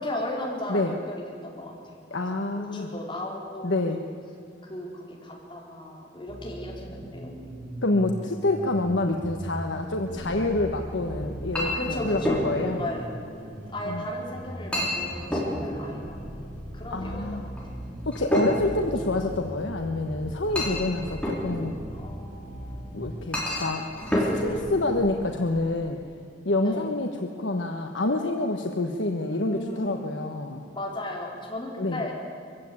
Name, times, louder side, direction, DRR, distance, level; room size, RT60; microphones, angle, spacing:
voice 1, 0.0-3.8 4.6-7.6 11.7-13.1 13.7-16.5 16.7-17.5 21.9-22.9 26.6-26.9 29.4-30.2 30.7-32.1, left 1 dB, 25° left, -3 dB, 4.5 m, -36 dB
voice 2, 2.1-2.9 3.6-4.0 7.8-12.8 13.8-14.0 16.9-17.5 18.1-21.7 22.9-26.0 26.4-30.6 31.8-32.0, left 2 dB, 80° left, 3 dB, 1.2 m, -27 dB
sound 1, 6.3-23.2, equal, 15° right, 5.2 m, -39 dB
Chink clink, 10.1-25.6, left 1 dB, 5° left, 4.2 m, -32 dB
22.5 x 16.0 x 9.7 m, 2.4 s
head